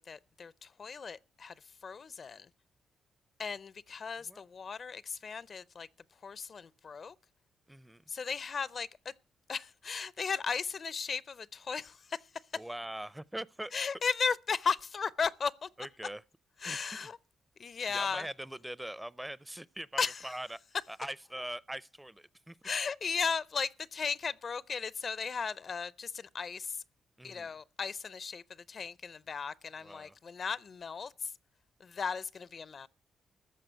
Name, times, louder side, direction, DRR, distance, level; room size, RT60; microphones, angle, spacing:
voice 1, 0.0-1.5 1.8-2.5 3.4-5.9 6.2-7.2 8.1-9.1 9.5-12.2 13.7-15.7 16.6-17.2 17.6-18.3 20.0-20.3 22.6-26.8 27.2-31.3 31.8-32.9, left 5 dB, 50° left, 0.5 m, -36 dB
voice 2, 7.7-8.0 12.5-13.7 15.8-16.2 16.6-17.1 17.9-20.6 20.9-22.6 27.2-27.5 29.8-30.2, right 1 dB, 10° right, 0.5 m, -42 dB
14.0 x 4.9 x 8.9 m
supercardioid pair, 65°, 0 cm